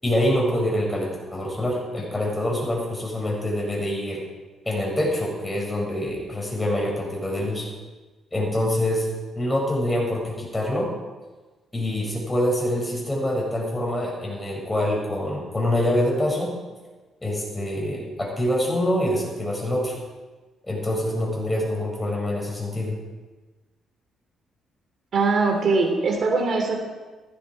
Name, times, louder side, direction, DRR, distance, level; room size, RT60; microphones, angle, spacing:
voice 1, 0.0-4.2 4.6-7.7 8.3-9.1 9.3-10.9 11.7-16.5 17.2-19.9 20.6-23.0, left 1 dB, 15° left, -2 dB, 6.8 m, -25 dB
voice 2, 25.1-26.8, right 3 dB, 55° right, 2 dB, 3.2 m, -21 dB
16.5 x 14.5 x 4.9 m, 1.3 s
cardioid pair, 90°, 0 cm